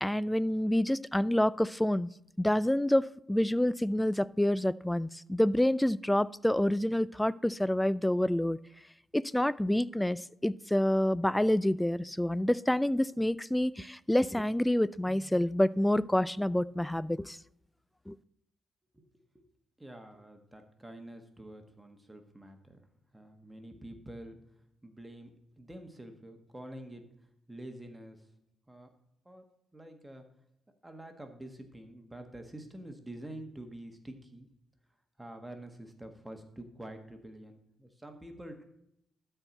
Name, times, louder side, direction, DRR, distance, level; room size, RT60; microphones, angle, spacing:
voice 1, 0.0-2.1 2.4-8.6 9.1-17.4 18.1-18.2, left 1 dB, 5° left, 19 dB, 0.3 m, -28 dB
voice 2, 19.8-22.8 23.1-24.4 24.8-27.1 27.5-28.2 28.7-28.9 29.2-29.4 29.7-30.2 30.8-34.5 35.2-38.6, right 1 dB, 10° right, 5 dB, 1.5 m, -47 dB
12.5 x 4.6 x 5.3 m, 0.75 s
cardioid pair, 75°, 0 cm